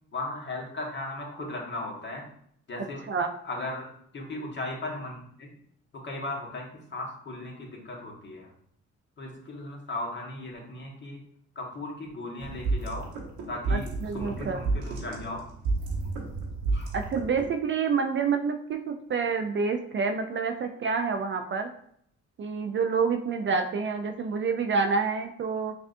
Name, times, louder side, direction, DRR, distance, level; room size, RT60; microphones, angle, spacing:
voice 1, 0.1-2.2 2.7-3.1 3.4-3.9 4.1-5.5 5.9-8.5 9.2-11.2 11.5-13.1 13.5-15.4 16.7-16.9, left 2 dB, 35° left, -1 dB, 1.3 m, -37 dB
voice 2, 2.8-3.3 13.7-14.6 16.9-21.7 22.4-25.7, right 5 dB, 40° right, 6 dB, 0.4 m, -28 dB
sound 1, 12.4-17.5, right 3 dB, 90° right, 1.0 m, -31 dB
5.9 x 2.4 x 2.6 m, 0.66 s
cardioid pair, 90°, 30 cm